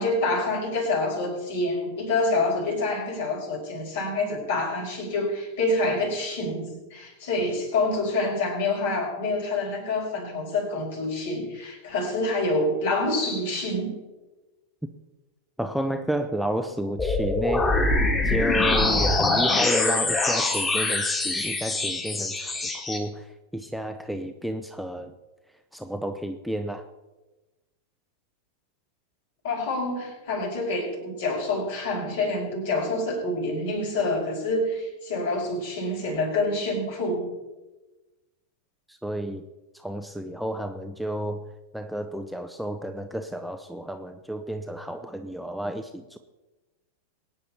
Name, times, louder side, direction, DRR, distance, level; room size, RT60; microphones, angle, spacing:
voice 1, 0.0-14.0 29.4-37.3, left 2 dB, 55° left, 0 dB, 5.6 m, -27 dB
voice 2, 15.6-17.7 18.2-25.2 25.7-26.8 38.9-39.5 39.7-41.4 41.7-46.2, equal, ahead, 6 dB, 0.8 m, -31 dB
sound 1, 17.0-23.0, left 2 dB, 20° left, 2.6 m, -24 dB
22.5 x 9.7 x 4.3 m, 1.1 s
figure-of-eight pair, 90°, 0 cm